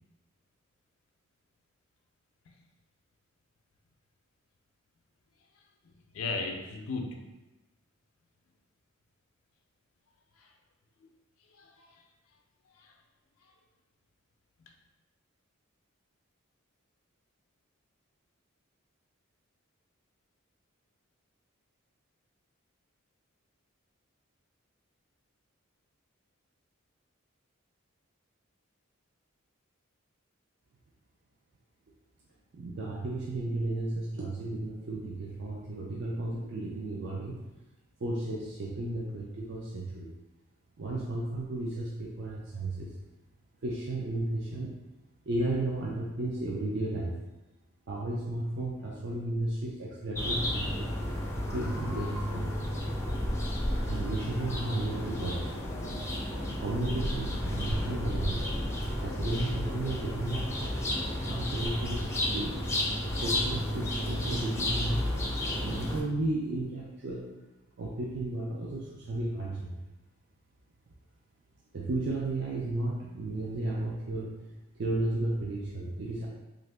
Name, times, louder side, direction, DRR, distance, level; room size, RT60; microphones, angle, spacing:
voice 1, 5.8-7.2 10.4-10.5 11.0-11.1 11.5-12.0 12.7-12.9 13.4-13.5, left 3 dB, 80° left, 2 dB, 0.4 m, -37 dB
voice 2, 32.5-37.4 38.0-40.1 40.8-42.9 43.6-44.8 45.3-47.2 47.9-50.9 51.5-52.5 53.7-55.9 56.6-58.4 59.0-60.7 61.3-62.1 62.3-62.6 63.0-65.1 65.6-67.3 67.8-69.7 71.7-74.4 74.8-76.3, right 2 dB, 55° right, -4 dB, 0.4 m, -33 dB
sound 1, 50.2-66.0, left 1 dB, 15° left, 0.3 m, -32 dB
2.8 x 2.6 x 3.3 m, 1.1 s
head